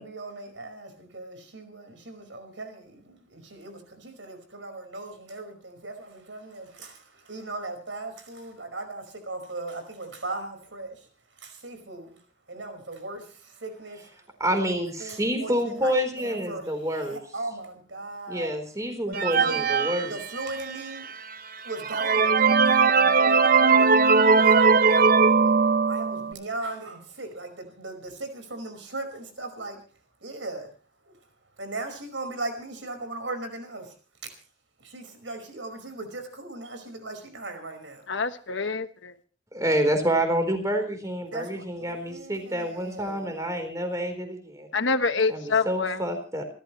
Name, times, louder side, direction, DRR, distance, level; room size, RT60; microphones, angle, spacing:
voice 1, 0.0-11.0 11.4-12.2 12.5-14.1 14.4-18.5 19.1-21.0 21.6-25.6 25.9-29.8 30.2-30.7 31.1-31.2 31.6-33.9 34.8-38.0 41.2-43.3, right 2 dB, 80° right, 7 dB, 5.2 m, -38 dB
voice 2, 14.4-17.2 18.3-20.1 39.5-44.7 45.3-46.4, equal, 20° right, 6 dB, 3.9 m, -28 dB
sound 1, 19.1-20.8 21.3-21.4 21.8-26.3, right 5 dB, 50° right, 0.7 m, -19 dB
voice 3, 38.1-39.1 44.7-46.0, left 4 dB, 80° left, 10 dB, 1.2 m, -26 dB
28.0 x 13.0 x 3.2 m, 0.39 s
head